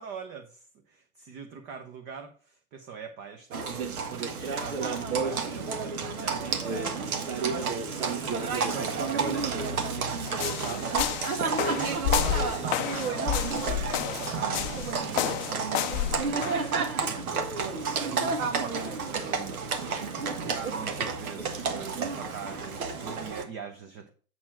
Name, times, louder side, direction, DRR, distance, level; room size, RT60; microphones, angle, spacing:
voice 1, 0.0-8.2 8.7-19.6 20.2-24.1, right 6 dB, 25° right, 7 dB, 0.8 m, -42 dB
Livestock farm animals working animals, 3.5-23.4, right 5 dB, 75° right, 1.6 m, -31 dB
sound 1, 10.3-16.7, left 12 dB, 35° left, 0.6 m, -30 dB
7.6 x 4.3 x 5.8 m, 0.41 s
hypercardioid pair, 120°, 43 cm